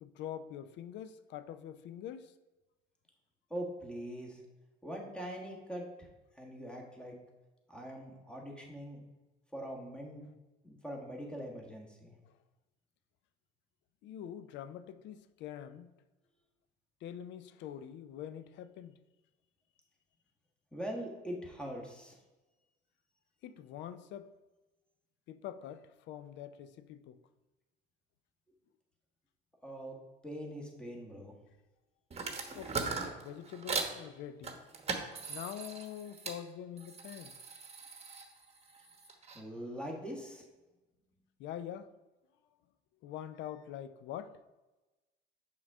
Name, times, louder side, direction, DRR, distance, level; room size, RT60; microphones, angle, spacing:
voice 1, 0.0-2.3 14.0-15.9 17.0-19.0 23.4-24.3 25.3-27.2 32.5-34.6 35.3-37.4 41.4-41.9 43.0-44.4, left 10 dB, 65° left, 0.5 m, -45 dB
voice 2, 3.5-4.4 4.8-6.1 6.4-7.1 7.7-9.0 9.5-10.3 10.6-12.1 20.7-22.2 29.6-30.0 30.2-31.3 39.3-40.4, equal, 5° left, 1.6 m, -42 dB
sound 1, 32.1-34.0 34.4-36.4 36.8-39.4, right 4 dB, 30° right, 1.1 m, -40 dB
5.9 x 3.7 x 5.4 m
supercardioid pair, 80°, 20 cm